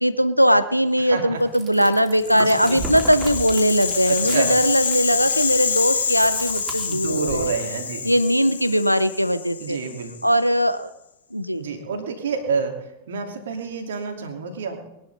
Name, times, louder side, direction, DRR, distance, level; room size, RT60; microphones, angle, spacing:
voice 1, 0.0-7.5 8.0-9.8 10.2-10.9 11.3-11.6, equal, 90° right, 14 dB, 0.8 m, -20 dB
voice 2, 1.0-1.4 2.3-2.8 4.1-4.5 6.8-8.1 9.6-10.1 11.5-14.9, right 5 dB, 60° right, 4 dB, 2.8 m, -29 dB
Chewing mastication, 1.4-7.5, right 3 dB, 25° right, 3.4 m, -35 dB
Rattle (instrument), 2.2-10.4, left 6 dB, 70° left, 1.6 m, -27 dB
21.5 x 11.5 x 4.2 m, 0.87 s
figure-of-eight pair, 90°, 0 cm